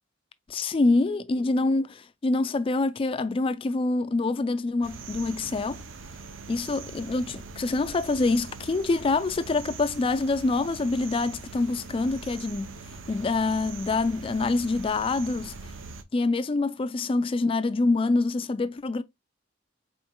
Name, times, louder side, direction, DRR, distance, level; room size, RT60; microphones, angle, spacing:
voice 1, 0.5-5.8 6.5-12.7 13.1-15.5 16.1-19.0, left 3 dB, 30° left, 0.3 m, -26 dB
sound 1, 4.8-16.0, right 4 dB, 85° right, 0.6 m, -42 dB
4.3 x 4.2 x 2.2 m
head